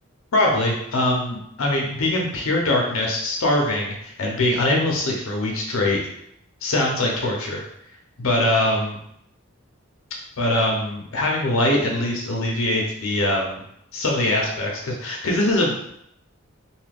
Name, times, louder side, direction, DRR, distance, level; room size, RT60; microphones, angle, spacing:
voice 1, 0.3-6.0 6.6-7.6 8.2-9.0 10.4-13.6 13.9-15.7, left 1 dB, 70° left, -1 dB, 0.7 m, -22 dB
2.7 x 2.4 x 3.3 m, 0.72 s
head